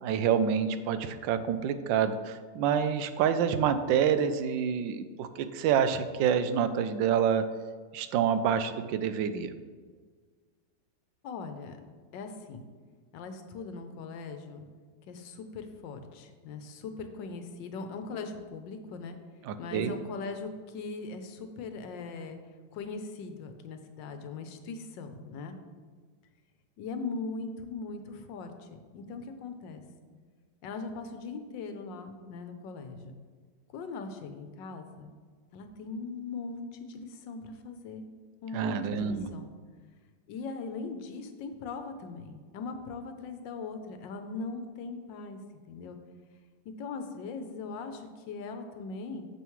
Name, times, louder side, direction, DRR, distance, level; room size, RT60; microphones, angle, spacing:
voice 1, 0.0-7.4 7.9-9.5 19.5-19.9 38.5-39.3, right 8 dB, 85° right, 11 dB, 1.3 m, -27 dB
voice 2, 11.2-11.8 12.1-12.6 13.1-14.7 15.1-19.2 19.6-22.4 22.7-25.6 26.8-29.8 30.6-33.1 33.7-35.1 35.5-38.0 38.4-39.5 40.3-45.4 45.7-46.0 46.8-49.3, left 4 dB, 80° left, 7 dB, 1.4 m, -40 dB
9.1 x 6.9 x 3.1 m, 1.5 s
omnidirectional pair, 2.0 m